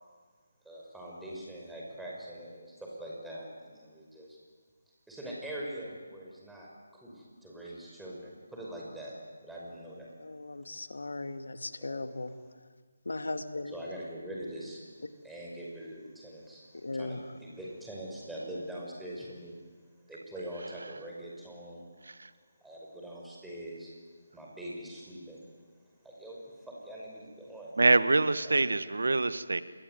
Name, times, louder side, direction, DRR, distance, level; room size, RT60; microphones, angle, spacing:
voice 1, 0.6-4.4 5.1-9.1 9.4-10.1 11.8-12.2 13.7-14.8 15.2-19.5 20.1-21.9 22.6-23.9 24.3-25.7 26.0-27.8 28.4-28.7, right 1 dB, 5° right, -4 dB, 5.8 m, -43 dB
voice 2, 10.2-12.3 13.1-13.7 16.7-17.2, left 2 dB, 80° left, 9 dB, 2.2 m, -37 dB
voice 3, 27.8-29.6, right 3 dB, 75° right, 14 dB, 1.4 m, -25 dB
27.0 x 21.0 x 9.4 m, 1.5 s
figure-of-eight pair, 160°, 0 cm